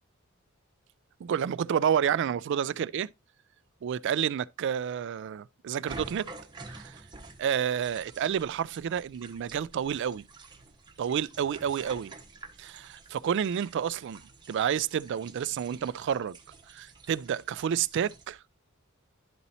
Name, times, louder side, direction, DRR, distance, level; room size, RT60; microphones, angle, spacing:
voice 1, 1.2-3.1 3.8-6.3 6.7-7.0 7.4-10.3 11.0-12.1 12.6-14.2 14.5-16.4 16.7-18.4, right 8 dB, 60° right, 0.3 m, -30 dB
sound 1, 5.9-18.3, right 3 dB, 20° right, 1.1 m, -49 dB
12.0 x 4.1 x 2.7 m
head